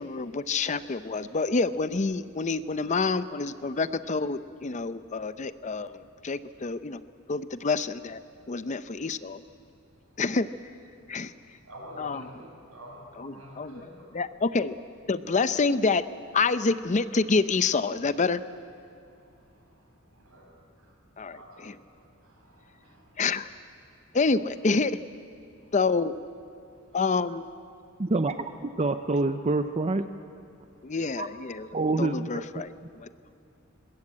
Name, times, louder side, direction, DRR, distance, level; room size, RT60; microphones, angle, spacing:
voice 1, 0.0-7.0 7.3-8.2 8.5-9.4 10.2-10.5 11.1-11.3 12.0-12.2 13.2-13.8 14.1-14.8 15.1-16.0 16.3-18.4 21.2-21.8 23.2-23.5 24.1-25.0 25.7-26.1 26.9-27.4 30.8-31.7 32.0-33.1, left 4 dB, 35° left, 13 dB, 0.6 m, -27 dB
voice 2, 11.2-14.1 19.1-20.9 21.3-23.2 24.1-24.2 25.6-25.8 26.8-27.0 30.7-31.0, equal, 85° right, 0 dB, 6.7 m, -50 dB
voice 3, 28.0-28.3 28.8-30.1 31.2-31.3 31.7-32.4, right 2 dB, 30° right, 9 dB, 0.6 m, -26 dB
21.5 x 20.5 x 8.6 m, 2.6 s
head